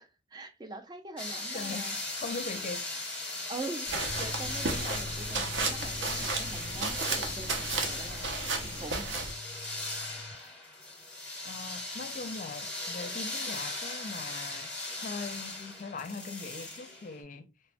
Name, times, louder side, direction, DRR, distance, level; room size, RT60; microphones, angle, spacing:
voice 1, 0.0-1.9 3.5-8.3 8.6-9.3, right 3 dB, 25° right, 0.4 m, -43 dB
sound 1, 1.2-17.2, left 2 dB, 5° left, 0.8 m, -38 dB
voice 2, 1.5-2.9 11.4-14.7 15.0-17.5, left 4 dB, 45° left, 0.4 m, -40 dB
sound 2, 3.9-9.3, right 3 dB, 80° right, 0.7 m, -34 dB
sound 3, 4.1-10.3, left 3 dB, 50° right, 0.8 m, -45 dB
3.3 x 2.2 x 2.5 m
head